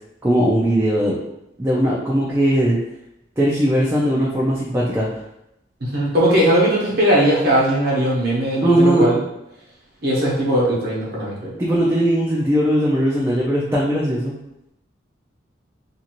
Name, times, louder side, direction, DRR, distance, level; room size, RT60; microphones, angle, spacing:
voice 1, 0.2-1.2 1.6-2.8 3.4-5.1 8.6-9.1 11.6-14.3, right 1 dB, 15° right, -6 dB, 0.4 m, -19 dB
voice 2, 5.8-9.2 10.0-11.5, right 1 dB, 55° right, -6 dB, 0.8 m, -19 dB
2.6 x 2.4 x 2.9 m, 0.84 s
head